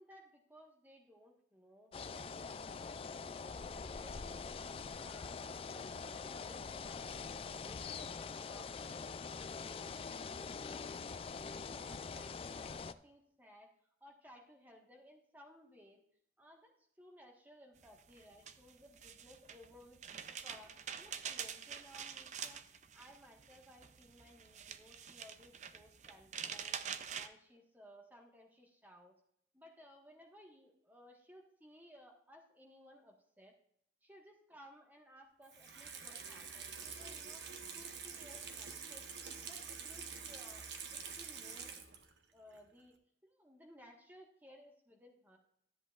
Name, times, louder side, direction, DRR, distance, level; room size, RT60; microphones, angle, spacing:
voice 1, 0.0-2.5 3.4-4.7 5.0-9.0 9.6-11.0 11.3-13.7 14.0-16.0 16.4-20.0 20.4-22.6 22.9-26.8 27.1-29.1 29.5-33.5 34.0-37.4 37.7-39.1 39.4-41.8 42.3-42.9 43.2-45.4, equal, 10° right, 1 dB, 1.4 m, -60 dB
sound 1, 1.9-12.9, left 5 dB, 30° left, 0.3 m, -44 dB
sound 2, 17.8-27.3, right 7 dB, 40° right, 0.5 m, -46 dB
Water tap faucet / Sink (filling or washing), 35.4-42.2 42.5-42.6, right 6 dB, 80° right, 1.1 m, -47 dB
13.5 x 7.8 x 2.4 m, 0.71 s
head